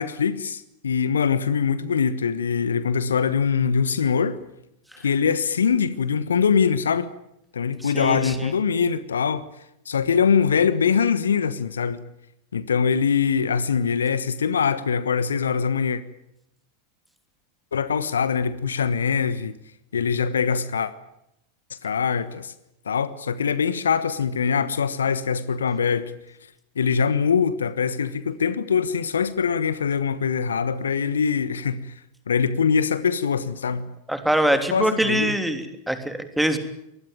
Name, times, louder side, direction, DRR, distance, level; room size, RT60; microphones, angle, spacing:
voice 1, 0.0-4.4 5.0-7.1 7.5-9.4 9.8-12.0 12.5-16.0 17.7-19.5 19.9-20.9 21.7-22.5 22.8-26.1 26.8-31.9 32.3-33.9 34.7-35.4, left 6 dB, 70° left, 1.3 m, -23 dB
voice 2, 7.8-8.5 34.1-36.6, right 1 dB, ahead, 3.1 m, -23 dB
24.5 x 20.0 x 9.1 m
figure-of-eight pair, 90°, 0 cm